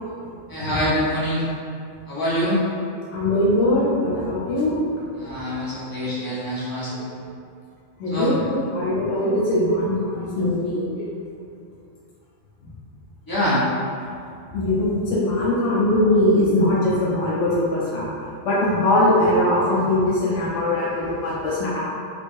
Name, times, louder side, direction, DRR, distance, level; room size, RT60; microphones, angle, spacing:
voice 1, 0.5-1.5 2.1-2.6 5.2-7.1 8.1-8.3 13.3-13.6, equal, 20° left, -10 dB, 0.9 m, -25 dB
voice 2, 3.1-4.8 5.2-5.3 6.9-7.0 8.0-11.0 14.5-18.1 18.4-21.8, left 1 dB, 90° left, -7 dB, 1.1 m, -21 dB
3.4 x 3.2 x 2.6 m, 2.4 s
omnidirectional pair, 1.2 m